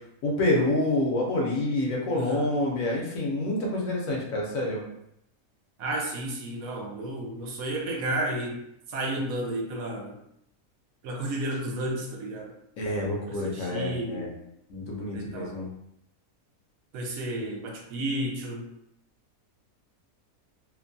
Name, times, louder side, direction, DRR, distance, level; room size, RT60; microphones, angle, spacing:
voice 1, 0.2-4.8 12.8-14.3 14.7-15.7, left 1 dB, 70° left, -2 dB, 1.1 m, -27 dB
voice 2, 2.1-2.5 5.8-8.6 8.9-10.1 11.0-12.5 13.3-14.3 15.1-15.5 16.9-18.7, right 1 dB, 75° right, 0 dB, 1.0 m, -32 dB
2.8 x 2.5 x 2.2 m, 0.77 s
omnidirectional pair, 1.5 m